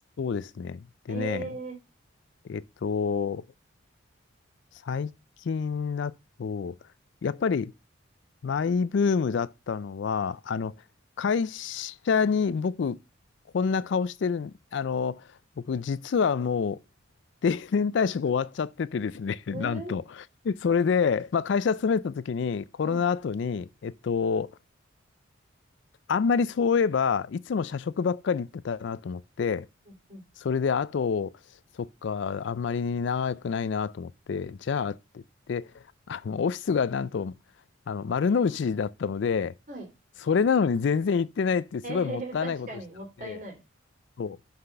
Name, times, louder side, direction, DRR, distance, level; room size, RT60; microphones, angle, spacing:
voice 1, 0.2-1.5 2.4-3.4 4.8-5.1 5.4-6.1 6.4-6.7 7.2-7.7 8.4-10.7 11.2-13.0 13.5-15.2 15.6-16.8 17.4-20.0 20.4-24.5 26.1-29.7 30.4-31.3 31.8-35.2 35.5-35.7 36.1-37.3 37.9-39.5 40.3-42.7 43.2-43.4 44.2-44.4, left 6 dB, 60° left, 0.3 m, -27 dB
voice 2, 1.1-1.8 19.5-20.0 22.8-23.0 29.9-30.2 39.7-39.9 41.8-43.6, right 3 dB, 40° right, 2.9 m, -38 dB
5.8 x 5.7 x 6.4 m
head